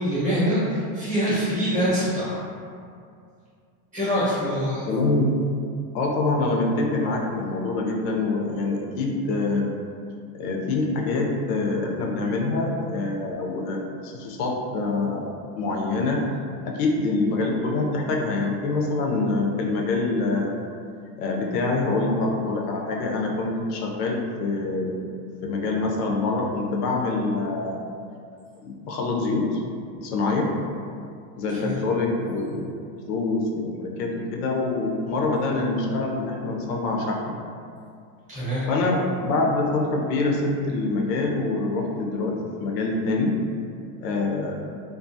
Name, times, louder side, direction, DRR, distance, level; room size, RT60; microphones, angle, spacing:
voice 1, 0.0-2.4 3.9-4.9 31.6-31.8 38.3-38.7, equal, 15° right, -10 dB, 0.7 m, -24 dB
voice 2, 4.9-5.3 5.9-9.7 10.3-16.2 16.6-20.6 21.2-25.0 25.4-27.8 28.6-29.6 30.0-30.5 31.4-32.7 33.0-37.3 38.7-43.3 44.0-44.5, left 3 dB, 75° left, 0 dB, 0.6 m, -25 dB
2.3 x 2.3 x 2.6 m, 2.3 s
supercardioid pair, 160°, 47 cm